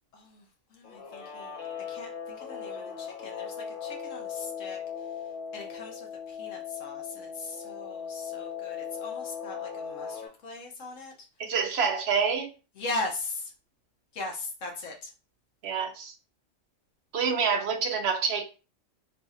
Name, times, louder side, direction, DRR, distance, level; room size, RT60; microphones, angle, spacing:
voice 1, 0.1-0.4 0.7-3.6 3.8-4.8 5.5-11.1 12.8-13.5 14.1-15.1, left 2 dB, 85° left, 1.2 m, -39 dB
Guitar, 0.8-10.3, left 7 dB, 45° left, 1.0 m, -38 dB
voice 2, 11.4-12.5 15.6-16.1 17.1-18.4, right 6 dB, 60° right, 0.9 m, -27 dB
3.2 x 2.5 x 4.0 m
omnidirectional pair, 1.3 m